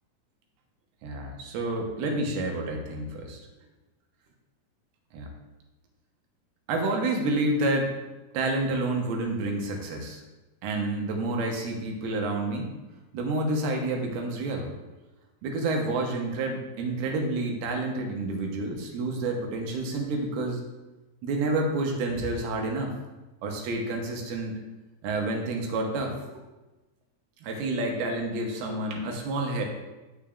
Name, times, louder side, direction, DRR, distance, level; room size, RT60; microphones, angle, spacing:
voice 1, 1.0-3.4 5.1-5.3 6.7-7.9 8.3-10.2 10.6-12.7 13.1-14.7 15.4-20.6 21.2-22.9 23.4-24.6 25.0-26.4 27.4-29.6, right 2 dB, 85° right, 2 dB, 2.8 m, -29 dB
8.6 x 6.2 x 2.4 m, 1.1 s
omnidirectional pair, 4.3 m